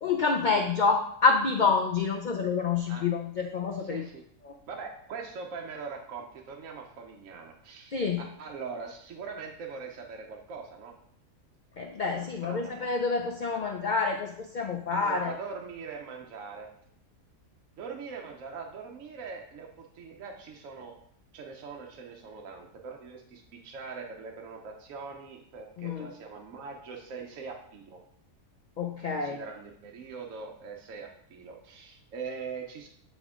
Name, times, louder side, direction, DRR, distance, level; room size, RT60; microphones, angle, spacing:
voice 1, 0.0-4.0 4.4-4.5 7.9-8.2 11.8-15.3 25.8-26.1 28.8-29.4, left 4 dB, 70° left, 3 dB, 0.4 m, -27 dB
voice 2, 3.8-4.2 4.7-8.0 8.4-10.9 11.8-12.0 12.2-12.7 13.5-13.6 14.9-16.7 17.8-20.9 21.3-28.0 29.1-32.9, right 5 dB, 70° right, 1 dB, 1.1 m, -42 dB
8.4 x 3.6 x 3.6 m, 0.68 s
omnidirectional pair, 1.5 m